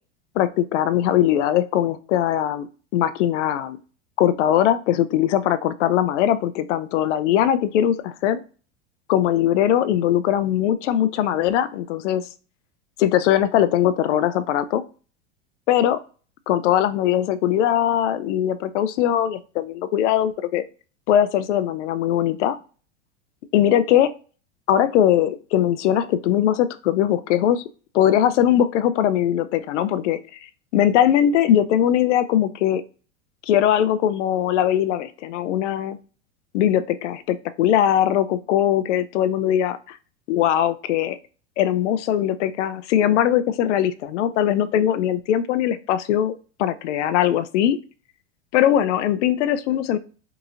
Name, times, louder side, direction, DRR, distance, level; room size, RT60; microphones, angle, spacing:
voice 1, 0.4-2.7 2.9-3.8 4.2-8.4 9.1-12.3 13.0-14.8 15.7-16.0 16.5-20.6 21.1-22.6 23.5-24.1 24.7-27.6 27.9-32.8 33.4-36.0 36.5-40.0 40.3-41.2 41.6-46.3 46.6-47.8 48.5-50.0, left 11 dB, 75° left, 14 dB, 0.5 m, -20 dB
3.8 x 2.8 x 2.4 m, 0.39 s
hypercardioid pair, 100°, 36 cm